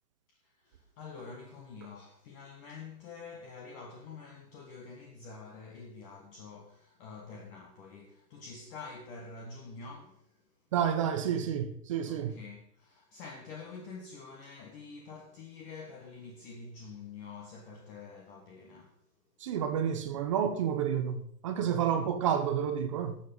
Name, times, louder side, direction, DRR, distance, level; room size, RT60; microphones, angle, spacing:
voice 1, 0.3-10.4 12.1-19.0 21.6-21.9, left 4 dB, 35° left, 1.7 m, -47 dB
voice 2, 10.7-12.4 19.4-23.2, right 8 dB, 20° right, 0.5 m, -30 dB
12.5 x 7.3 x 5.4 m
hypercardioid pair, 150°, 49 cm